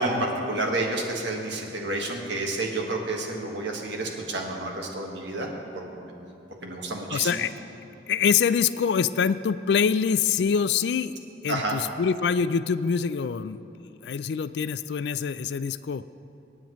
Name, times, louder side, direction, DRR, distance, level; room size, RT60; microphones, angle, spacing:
voice 1, 0.0-6.1 6.6-7.4 11.5-11.8, right 2 dB, 75° right, 0 dB, 1.6 m, -30 dB
voice 2, 7.1-7.5 8.1-11.1 11.4-16.0, left 6 dB, 65° left, 15 dB, 0.3 m, -25 dB
26.0 x 8.7 x 3.1 m, 2.8 s
head